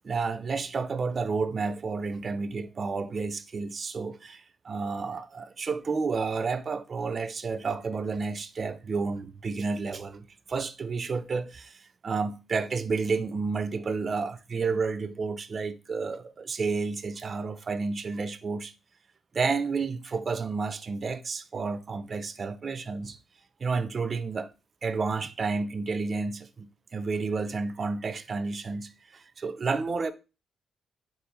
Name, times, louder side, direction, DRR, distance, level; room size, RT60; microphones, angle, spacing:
voice 1, 0.0-18.7 19.3-23.2 23.6-24.5 24.8-30.1, right 4 dB, 50° right, 0.4 m, -31 dB
4.2 x 2.7 x 3.7 m
hypercardioid pair, 45°, 0 cm